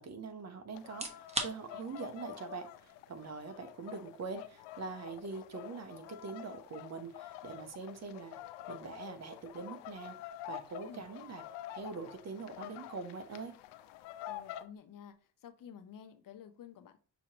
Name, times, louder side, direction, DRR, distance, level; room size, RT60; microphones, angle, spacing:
voice 1, 0.0-8.4 8.7-11.4 11.7-13.5, right 4 dB, 40° right, 8 dB, 1.0 m, -44 dB
sound 1, 0.7-14.6, left 13 dB, 80° left, 0.6 m, -48 dB
sound 2, 0.8-15.7, right 2 dB, 15° right, 1.0 m, -50 dB
voice 2, 14.3-15.1 15.4-17.0, left 8 dB, 50° left, 9 dB, 0.8 m, -51 dB
6.1 x 2.9 x 2.9 m, 0.39 s
supercardioid pair, 85°, 42 cm